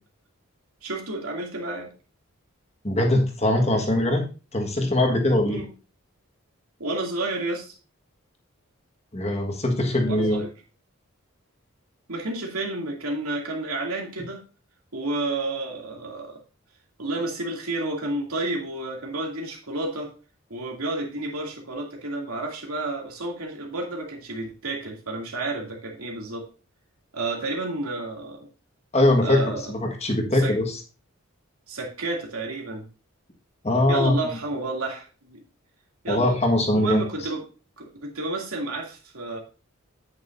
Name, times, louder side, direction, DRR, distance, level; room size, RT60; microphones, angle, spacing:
voice 1, 0.8-1.9 5.4-5.7 6.8-7.7 10.0-10.5 12.1-14.4 14.9-16.4 17.0-20.1 20.5-26.5 27.1-28.5 29.2-29.7 30.3-30.5 31.7-32.9 33.9-35.4 36.0-36.4 36.7-37.4 37.8-39.4, right 2 dB, 80° right, 0 dB, 2.6 m, -31 dB
voice 2, 2.8-4.2 4.5-5.6 9.1-10.4 28.9-29.4 29.7-30.8 33.6-34.1 36.1-37.0, left 1 dB, 30° left, 2 dB, 1.5 m, -21 dB
9.5 x 9.1 x 2.6 m, 0.34 s
head